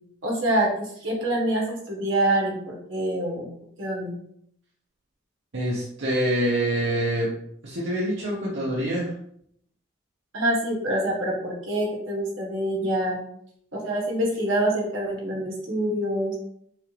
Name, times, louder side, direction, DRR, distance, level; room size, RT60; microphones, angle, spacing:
voice 1, 0.2-3.4 3.8-4.1 10.3-13.2 13.7-16.3, right 1 dB, 90° right, -2 dB, 1.6 m, -26 dB
voice 2, 5.5-7.3 7.6-9.1, right 1 dB, 70° right, -6 dB, 1.0 m, -25 dB
6.1 x 2.5 x 3.3 m, 0.69 s
head